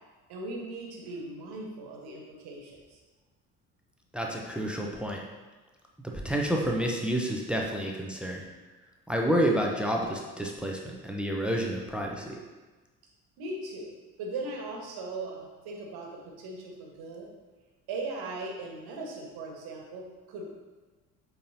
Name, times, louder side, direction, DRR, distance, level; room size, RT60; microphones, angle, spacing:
voice 1, 0.3-3.0 13.4-13.9 14.2-17.3 17.9-20.4, right 2 dB, 60° right, -1 dB, 1.6 m, -39 dB
voice 2, 4.1-5.2 6.0-8.4 9.1-12.4, right 1 dB, ahead, 0 dB, 0.9 m, -29 dB
8.4 x 4.1 x 2.9 m, 1.3 s
hypercardioid pair, 55°, 42 cm